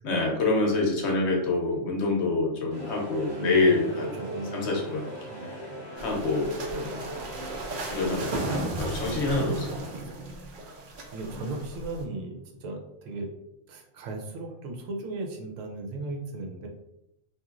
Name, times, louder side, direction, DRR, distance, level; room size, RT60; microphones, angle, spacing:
voice 1, 0.0-4.1 4.5-5.1 5.4-5.6 6.0-7.1 7.9-9.8 11.3-11.4, left 3 dB, 65° left, 0 dB, 0.9 m, -26 dB
sound 1, 2.7-8.1, right 1 dB, 45° right, 0.9 m, -38 dB
voice 2, 3.4-3.8 4.2-4.8 5.3-5.5 11.1-12.4 12.6-13.3 13.7-16.7, right 2 dB, 80° right, 3 dB, 0.9 m, -36 dB
sound 2, 6.0-12.0, right 2 dB, 65° right, 0.5 m, -35 dB
2.9 x 2.5 x 2.4 m, 0.84 s
omnidirectional pair, 1.3 m